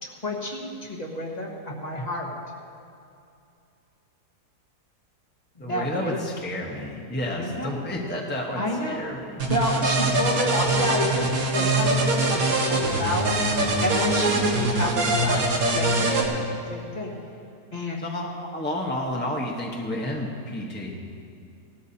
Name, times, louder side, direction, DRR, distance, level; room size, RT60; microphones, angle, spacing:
voice 1, 0.0-2.3 5.6-6.2 7.4-7.7 8.5-9.0 9.5-13.3 13.8-16.4 16.7-17.1 17.7-18.0, left 1 dB, 25° left, -2 dB, 1.5 m, -29 dB
voice 2, 5.6-9.4 18.0-21.0, left 1 dB, 10° left, -3 dB, 0.9 m, -31 dB
sound 1, 9.4-16.2, right 2 dB, 70° right, 1.9 m, -23 dB
18.0 x 13.0 x 2.8 m, 2.5 s
omnidirectional pair, 1.7 m